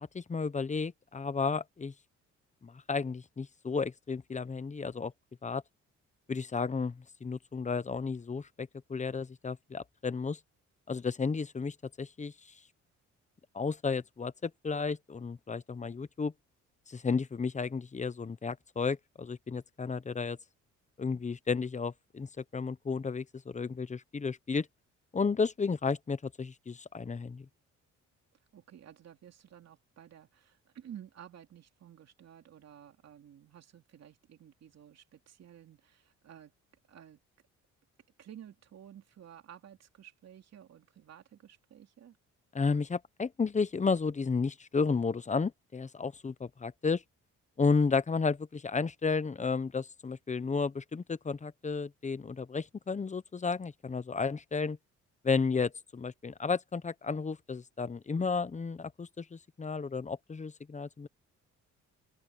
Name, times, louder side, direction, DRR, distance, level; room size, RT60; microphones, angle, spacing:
voice 1, 0.1-1.9 2.6-5.1 5.4-5.6 6.3-10.4 10.9-12.3 13.5-16.3 16.9-20.4 21.0-24.7 25.1-27.5 42.5-47.0 47.6-54.8 55.2-61.1, left 4 dB, 25° left, 0.9 m, -32 dB
voice 2, 28.5-36.5 36.9-37.2 38.2-42.2, right 10 dB, 60° right, 2.9 m, -53 dB
open air
cardioid pair, 90°, 30 cm